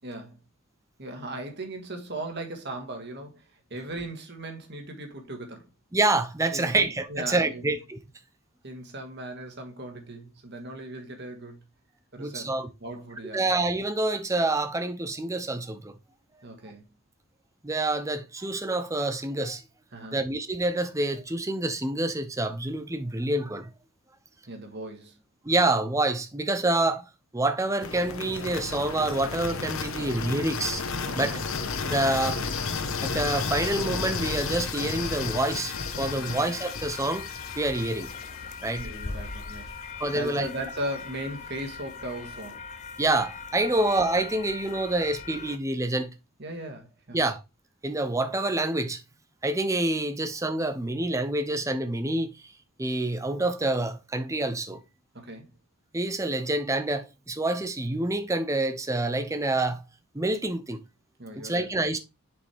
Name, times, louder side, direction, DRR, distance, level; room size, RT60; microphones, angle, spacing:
voice 1, 0.0-0.4 1.0-5.7 6.5-7.7 8.6-11.6 12.1-12.5 12.8-13.5 16.4-17.0 19.9-20.2 24.5-25.2 31.1-31.4 36.1-36.4 38.8-39.8 40.1-42.6 43.7-43.9 46.4-47.2 55.1-55.5 61.2-61.7, right 1 dB, 55° right, 1.7 m, -38 dB
voice 2, 5.9-8.0 12.2-12.7 13.3-15.9 17.6-19.6 20.1-23.7 25.4-27.1 27.3-30.8 31.2-31.3 31.9-32.4 33.0-37.3 37.6-38.1 38.6-38.9 40.0-40.5 43.0-46.1 47.1-47.4 47.8-49.0 49.4-52.3 52.8-54.8 55.9-59.8 60.1-60.8 61.4-62.0, right 2 dB, 15° right, 0.7 m, -27 dB
sound 1, 27.8-39.7, left 4 dB, 75° left, 1.0 m, -33 dB
sound 2, 34.9-45.6, left 5 dB, 35° left, 0.5 m, -41 dB
6.8 x 5.3 x 3.4 m
head